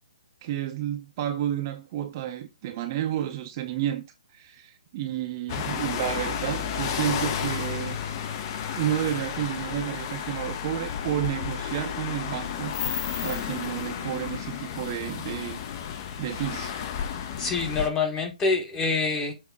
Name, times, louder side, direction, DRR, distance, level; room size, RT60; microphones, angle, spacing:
voice 1, 0.4-4.0 4.3-8.0 8.8-12.7 13.2-15.6 16.2-16.7, right 12 dB, 30° right, 0.7 m, -31 dB
sound 1, 5.5-17.9, left 8 dB, 30° left, 0.7 m, -32 dB
voice 2, 17.4-19.3, left 4 dB, 15° left, 1.0 m, -26 dB
7.1 x 2.8 x 4.7 m
hypercardioid pair, 160°, 4 cm